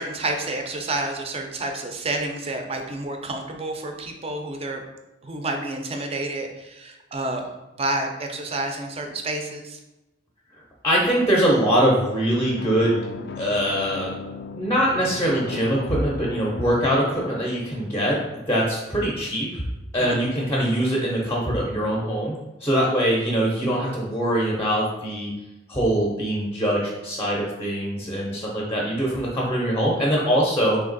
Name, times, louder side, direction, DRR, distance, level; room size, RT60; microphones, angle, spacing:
voice 1, 0.0-4.8 5.2-7.5 7.8-9.8 20.0-20.3, right 2 dB, 30° right, 4 dB, 0.5 m, -29 dB
voice 2, 10.8-13.0 13.4-14.1 14.5-18.2 18.5-19.6 19.9-25.3 25.7-30.8, equal, 15° left, -3 dB, 0.6 m, -23 dB
sound 1, 12.4-18.1, left 4 dB, 60° left, 0.3 m, -37 dB
3.4 x 2.9 x 3.9 m, 1.0 s
head